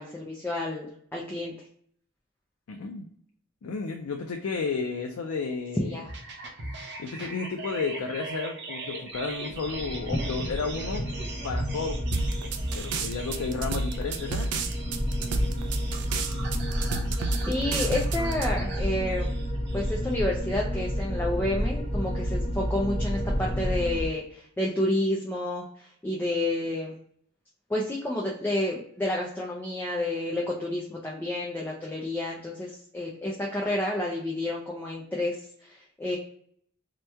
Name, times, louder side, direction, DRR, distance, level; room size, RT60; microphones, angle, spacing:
voice 1, 0.0-1.5 5.8-6.1 17.5-19.3 19.7-26.9 27.7-36.2, left 1 dB, 10° left, -3 dB, 0.3 m, -30 dB
voice 2, 2.7-3.1 3.6-6.0 7.0-11.1 11.4-12.1 12.7-14.5, left 4 dB, 80° left, 3 dB, 0.4 m, -32 dB
sound 1, 6.1-20.1, right 2 dB, 50° right, 0.6 m, -38 dB
sound 2, 9.5-24.1, equal, 30° left, 0.9 m, -31 dB
sound 3, 12.1-18.5, right 4 dB, 90° right, 0.4 m, -31 dB
2.9 x 2.1 x 3.3 m, 0.65 s
head